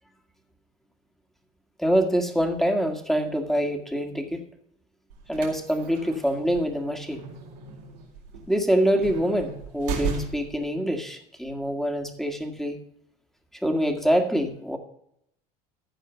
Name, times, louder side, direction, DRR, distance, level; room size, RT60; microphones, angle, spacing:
voice 1, 1.8-4.5 5.3-7.2 8.5-12.8 13.6-14.8, equal, ahead, 5 dB, 2.0 m, -25 dB
sound 1, 5.1-10.7, right 5 dB, 90° right, 3.7 m, -36 dB
14.5 x 4.9 x 7.1 m, 0.74 s
hypercardioid pair, 80°, 20 cm